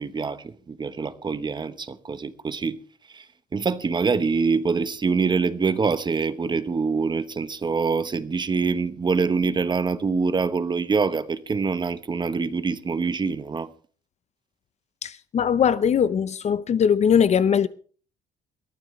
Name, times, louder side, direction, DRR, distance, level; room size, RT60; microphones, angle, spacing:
voice 1, 0.0-2.8 3.1-3.3 3.5-13.7, right 4 dB, 25° right, 1.0 m, -25 dB
voice 2, 15.0-17.7, left 7 dB, 40° left, 0.7 m, -20 dB
21.5 x 14.5 x 3.2 m
cardioid pair, 110°, 17 cm